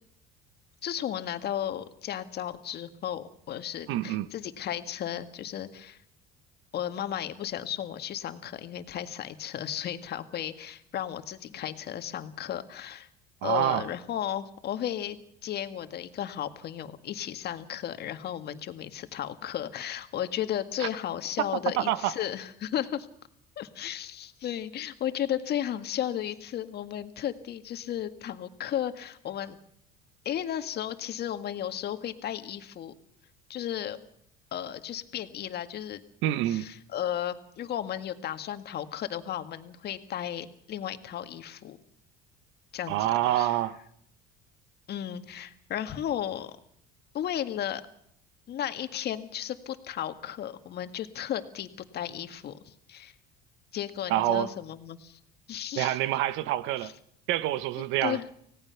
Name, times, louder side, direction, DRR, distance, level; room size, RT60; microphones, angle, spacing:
voice 1, 0.8-6.0 6.7-13.1 13.4-15.2 15.4-23.1 23.6-29.6 30.3-32.9 33.5-34.0 34.5-36.0 36.5-41.8 42.7-43.6 44.9-46.5 47.1-47.8 48.5-51.7 51.9-53.1 53.7-55.2 55.5-56.0 56.8-56.9 58.0-58.2, left 10 dB, 55° left, 1.8 m, -34 dB
voice 2, 3.9-4.3 13.4-13.9 20.8-20.9 21.8-22.1 36.2-36.7 42.9-43.8 54.1-54.5 55.8-56.9 57.3-58.2, right 14 dB, 70° right, 1.2 m, -27 dB
25.5 x 17.5 x 5.9 m
supercardioid pair, 85°, 20 cm